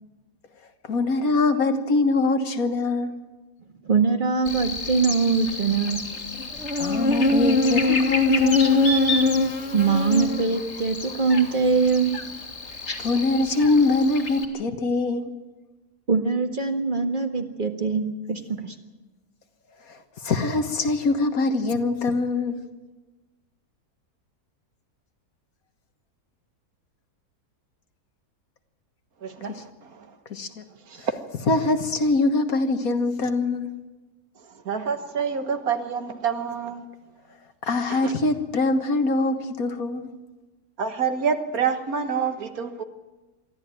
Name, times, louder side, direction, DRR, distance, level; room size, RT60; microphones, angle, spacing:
voice 1, 0.9-3.1 6.8-9.2 13.0-15.3 19.9-20.0 20.2-22.6 30.3-30.6 31.5-33.7 37.6-40.1, left 3 dB, 65° left, 1.9 m, -23 dB
voice 2, 3.8-6.1 9.7-12.2 16.1-18.8, right 5 dB, 30° right, 1.8 m, -23 dB
Buzz, 4.5-14.5, left 2 dB, 45° left, 2.3 m, -25 dB
voice 3, 29.2-30.2 30.9-31.1 34.4-36.9 37.9-38.1 40.8-42.8, right 6 dB, 65° right, 1.8 m, -28 dB
23.5 x 14.0 x 9.1 m
omnidirectional pair, 1.7 m